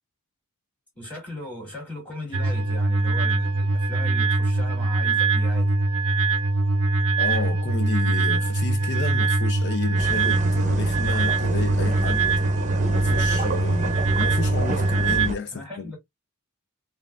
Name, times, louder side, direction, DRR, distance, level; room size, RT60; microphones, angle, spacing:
voice 1, 0.9-5.8 15.5-16.0, left 1 dB, 5° left, 3.0 m, -37 dB
sound 1, 2.3-15.3, right 3 dB, 75° right, 0.5 m, -22 dB
voice 2, 7.2-12.2 12.9-15.9, left 4 dB, 55° left, 0.6 m, -31 dB
sound 2, 10.0-15.3, right 2 dB, 35° right, 0.7 m, -30 dB
5.4 x 2.5 x 2.4 m
head